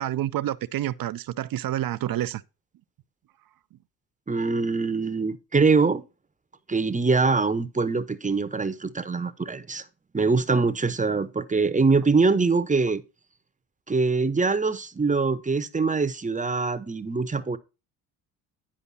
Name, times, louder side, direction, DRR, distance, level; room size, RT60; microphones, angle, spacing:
voice 1, 0.0-2.4, right 13 dB, 50° right, 0.6 m, -28 dB
voice 2, 4.3-6.0 6.7-9.8 10.1-13.0 13.9-17.6, right 4 dB, 15° right, 0.8 m, -23 dB
9.8 x 5.1 x 4.1 m
supercardioid pair, 65°, 45 cm